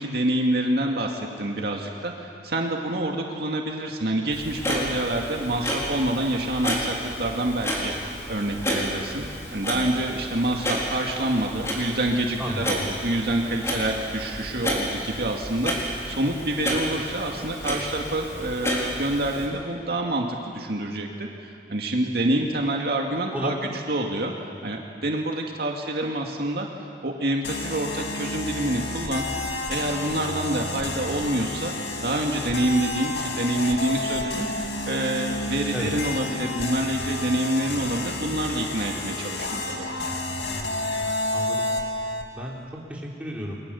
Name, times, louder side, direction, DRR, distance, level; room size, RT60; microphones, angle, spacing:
voice 1, 0.0-9.2 9.5-23.5 23.9-24.3 24.6-26.7 27.0-29.3 29.7-31.7 32.0-40.0, right 1 dB, 60° right, 1 dB, 2.1 m, -27 dB
Clock, 4.3-19.5, equal, 15° left, 4.5 m, -31 dB
voice 2, 23.3-23.7 35.7-35.9 41.3-41.7 42.3-43.6, equal, 10° right, -4 dB, 3.9 m, -32 dB
sound 1, 27.4-42.3, left 2 dB, 80° left, 2.6 m, -30 dB
29.5 x 22.5 x 7.0 m, 2.5 s
head